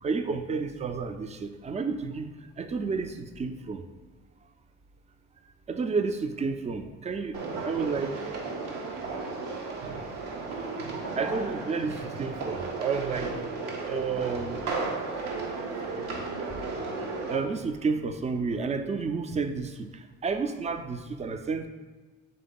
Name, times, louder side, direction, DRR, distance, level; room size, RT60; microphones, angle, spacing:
voice 1, 0.0-2.3 2.6-3.8 5.7-7.4 7.6-8.1 9.8-10.0 11.2-13.3 13.9-14.6 17.3-21.7, right 4 dB, 20° right, 8 dB, 0.4 m, -31 dB
sound 1, 7.3-17.4, right 3 dB, 75° right, 0.8 m, -34 dB
3.8 x 3.4 x 3.7 m, 1.3 s
hypercardioid pair, 45°, 36 cm